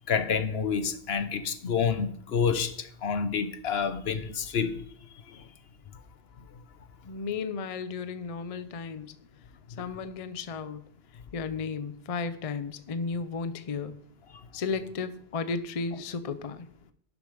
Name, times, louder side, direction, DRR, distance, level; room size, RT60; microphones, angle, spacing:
voice 1, 0.1-4.8, left 6 dB, 65° left, 1.0 m, -28 dB
voice 2, 7.0-9.1 9.8-10.8 11.3-13.9 14.5-16.7, left 4 dB, 40° left, 0.6 m, -34 dB
11.0 x 7.1 x 5.0 m
omnidirectional pair, 1.2 m